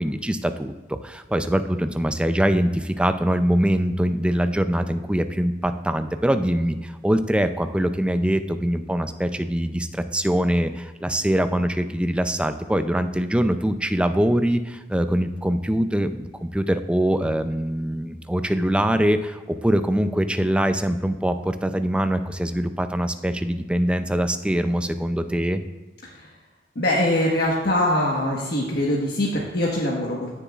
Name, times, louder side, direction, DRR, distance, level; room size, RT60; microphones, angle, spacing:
voice 1, 0.0-25.6, equal, 5° right, 9 dB, 0.4 m, -23 dB
voice 2, 26.7-30.3, left 1 dB, 65° left, -4 dB, 1.3 m, -23 dB
16.5 x 6.9 x 2.4 m, 1.2 s
head